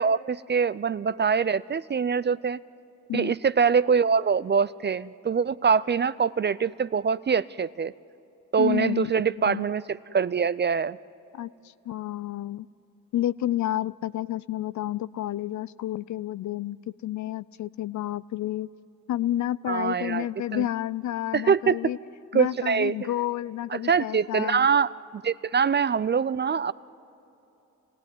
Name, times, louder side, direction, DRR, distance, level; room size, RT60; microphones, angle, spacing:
voice 1, 0.0-2.6 3.1-7.9 8.5-11.0 19.7-20.3 20.5-20.7 21.3-21.8 22.3-22.9 23.7-24.9 25.2-26.7, right 6 dB, 25° right, 17 dB, 0.5 m, -24 dB
voice 2, 8.6-9.1 9.4-9.7 11.3-11.5 11.9-12.7 13.1-16.8 17.0-18.7 19.1-22.0 22.3-24.7, left 13 dB, 45° left, 19 dB, 0.5 m, -30 dB
27.5 x 18.0 x 9.6 m, 2.9 s
hypercardioid pair, 45°, 43 cm